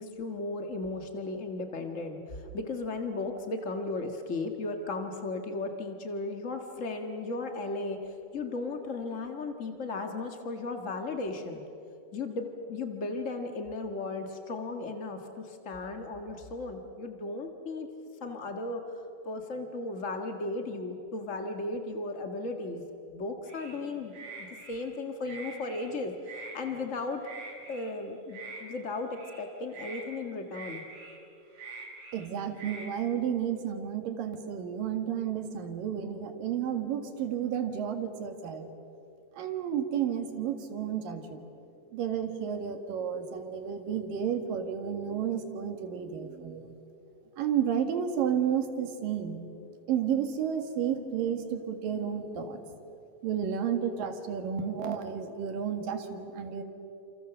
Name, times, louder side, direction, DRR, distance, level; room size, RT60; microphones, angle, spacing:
voice 1, 0.0-11.6 12.1-17.9 18.2-18.8 19.2-22.8 23.1-27.2 27.7-30.8, left 3 dB, 55° left, 5 dB, 0.8 m, -36 dB
sound 1, 23.5-23.8 24.1-24.8 25.2-25.9 26.2-26.6 27.2-27.9 28.3-28.6 29.1-29.4 29.7-30.1 30.5-31.2 31.5-32.3 32.5-32.9, right 4 dB, 60° right, 6.5 m, -44 dB
voice 2, 32.1-38.7 39.4-41.4 41.9-46.7 47.4-49.5 49.9-52.6 53.2-56.6, right 8 dB, 75° right, 6 dB, 3.5 m, -32 dB
29.0 x 28.0 x 7.0 m, 2.8 s
omnidirectional pair, 4.0 m